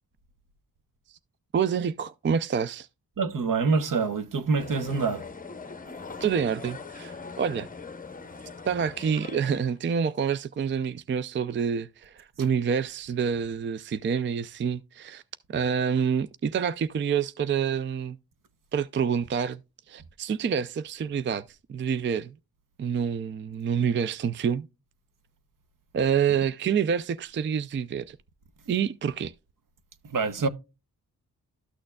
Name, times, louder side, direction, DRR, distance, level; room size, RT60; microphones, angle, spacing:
voice 1, 1.5-2.9 6.2-7.7 8.6-15.2 15.5-18.2 18.7-19.6 19.9-22.3 22.8-24.7 25.9-28.2 28.7-29.3, right 7 dB, 35° right, 0.4 m, -27 dB
voice 2, 3.2-5.3 30.1-30.5, right 4 dB, 60° right, 0.9 m, -26 dB
sound 1, 4.6-9.8, left 4 dB, 20° left, 0.7 m, -41 dB
12.5 x 6.4 x 2.3 m
cardioid pair, 75°, 37 cm